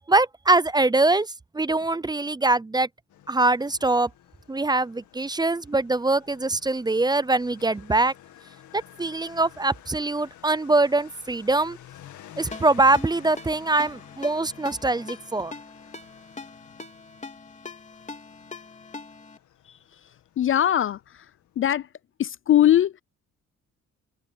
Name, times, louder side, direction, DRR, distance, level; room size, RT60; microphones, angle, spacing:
voice 1, 0.1-2.9 3.3-4.1 4.5-8.1 8.7-11.8 12.4-15.5, right 2 dB, 15° right, 0.6 m, -23 dB
Motorcycle, 3.1-21.9, left 12 dB, 75° left, 2.3 m, -51 dB
Ringtone, 12.5-19.4, left 3 dB, 25° left, 3.0 m, -42 dB
voice 2, 20.4-21.3 21.6-21.9 22.2-23.0, left 11 dB, 45° left, 0.4 m, -21 dB
cardioid pair, 90°, 30 cm